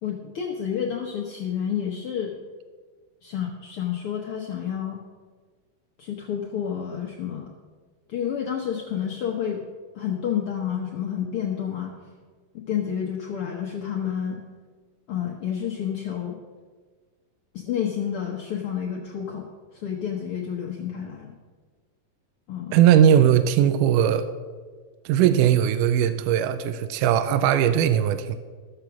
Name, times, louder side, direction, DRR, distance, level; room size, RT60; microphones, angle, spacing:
voice 1, 0.0-2.4 3.2-5.0 6.0-7.5 8.1-9.6 9.9-12.0 12.7-14.4 15.1-16.4 17.5-21.3 22.5-22.8, left 8 dB, 85° left, 0 dB, 1.2 m, -29 dB
voice 2, 22.7-24.3 25.1-28.4, right 10 dB, 80° right, 11 dB, 2.1 m, -19 dB
13.5 x 7.0 x 6.0 m, 1.5 s
omnidirectional pair, 3.9 m